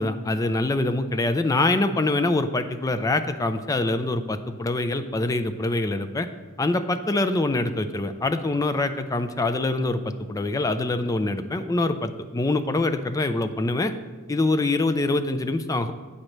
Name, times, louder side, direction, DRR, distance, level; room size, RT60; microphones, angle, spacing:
voice 1, 0.0-6.3 6.6-13.9 14.3-15.9, left 2 dB, 15° left, 9 dB, 0.3 m, -24 dB
8.5 x 3.1 x 6.4 m, 1.4 s
head